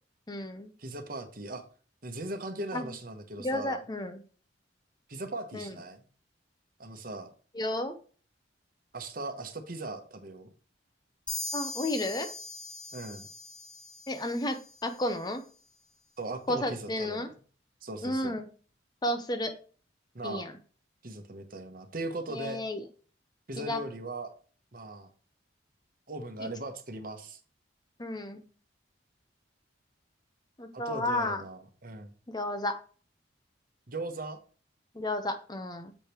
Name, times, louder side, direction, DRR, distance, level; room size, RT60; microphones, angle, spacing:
voice 1, 0.3-0.7 2.7-2.9 3.4-4.2 5.5-5.7 7.5-7.9 11.5-12.3 14.1-15.4 16.5-17.3 18.0-18.5 19.0-19.5 20.2-20.5 22.3-22.8 23.6-23.8 26.4-26.5 28.0-28.5 30.6-31.4 32.3-32.8 34.9-35.9, left 1 dB, 20° left, 8 dB, 0.8 m, -32 dB
voice 2, 0.8-1.6 2.0-3.8 5.1-6.0 6.8-7.3 8.9-10.5 12.9-13.3 16.2-17.3 17.8-18.4 20.1-20.5 21.0-22.6 23.5-24.3 24.7-25.1 26.1-27.4 30.7-32.1 33.9-34.4, right 2 dB, 50° right, 6 dB, 1.2 m, -39 dB
sound 1, 11.3-14.9, left 2 dB, 5° left, 1.3 m, -40 dB
7.5 x 5.2 x 4.4 m, 0.40 s
head